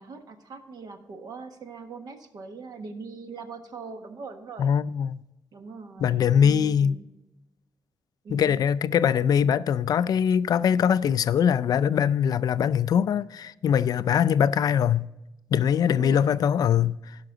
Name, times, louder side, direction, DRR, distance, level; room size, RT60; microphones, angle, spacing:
voice 1, 0.0-4.7 5.5-7.1 8.2-8.7 16.0-16.3, right 4 dB, 60° right, 1.3 m, -41 dB
voice 2, 4.6-5.2 6.0-7.0 8.3-15.1 15.5-17.0, left 8 dB, 55° left, 0.4 m, -22 dB
16.5 x 5.8 x 3.8 m
wide cardioid pair, 150°, 8 cm